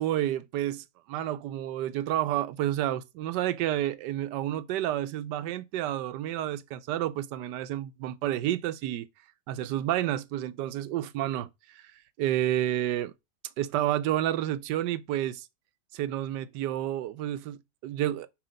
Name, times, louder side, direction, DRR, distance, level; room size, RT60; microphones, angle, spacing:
voice 1, 0.0-9.1 9.5-11.9 12.2-13.1 13.6-15.5 15.9-18.3, right 12 dB, 90° right, 1.3 m, -30 dB
5.9 x 5.0 x 5.2 m
omnidirectional pair, 1.8 m